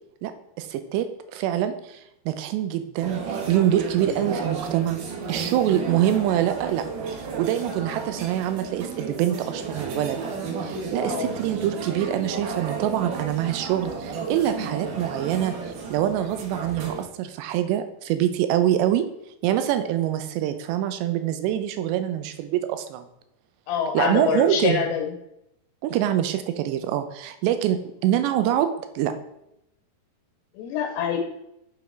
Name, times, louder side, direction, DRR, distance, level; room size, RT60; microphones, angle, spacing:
voice 1, 0.2-2.0 2.3-3.2 3.5-5.0 5.3-6.9 7.2-10.2 10.6-19.0 19.4-23.1 23.9-24.9 25.8-29.1, right 11 dB, 85° right, 10 dB, 2.9 m, -25 dB
sound 1, 3.0-17.1, right 5 dB, 65° right, 2.3 m, -33 dB
voice 2, 23.7-25.1 30.5-31.2, left 7 dB, 80° left, 2 dB, 3.1 m, -25 dB
7.8 x 4.9 x 4.6 m, 0.81 s
omnidirectional pair, 4.9 m